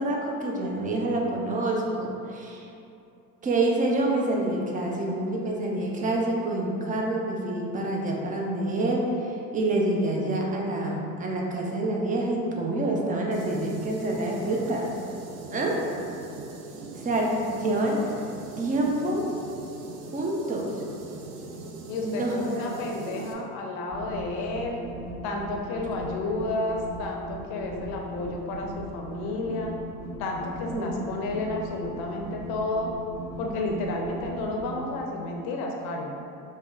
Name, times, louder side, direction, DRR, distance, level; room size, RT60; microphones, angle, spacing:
voice 1, 0.0-2.7 3.4-14.9 15.5-15.9 16.9-18.0 18.6-19.3 20.1-20.8 22.0-22.7 30.7-30.9, right 2 dB, 20° right, -1 dB, 0.5 m, -27 dB
sound 1, 13.3-23.3, right 3 dB, 75° right, 0.6 m, -41 dB
voice 2, 21.9-24.8 25.2-29.7 30.2-32.9 33.4-36.1, left 2 dB, 55° left, 0 dB, 0.7 m, -31 dB
sound 2, 23.9-34.8, right 1 dB, 40° right, 1.1 m, -39 dB
5.2 x 2.1 x 2.3 m, 2.6 s
hypercardioid pair, 65°, 47 cm